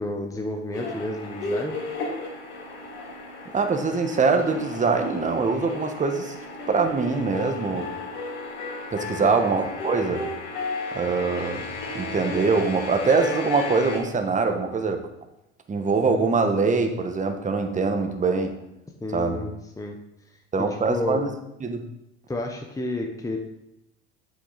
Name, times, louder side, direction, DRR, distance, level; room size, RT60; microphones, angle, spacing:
voice 1, 0.0-1.8 9.2-9.3 19.0-19.5 19.8-20.0 20.3-20.4 20.8-21.2 22.3-23.4, left 2 dB, 10° left, 2 dB, 1.0 m, -30 dB
sound 1, 0.7-14.0, left 3 dB, 70° left, 2.7 m, -34 dB
voice 2, 3.5-6.3 6.7-7.9 8.9-10.2 10.9-11.6 11.9-15.0 15.7-18.6 19.1-19.4 20.5-21.3 21.6-21.8, right 4 dB, 20° right, 5 dB, 1.2 m, -23 dB
8.1 x 6.3 x 4.1 m, 0.86 s
hypercardioid pair, 75°, 33 cm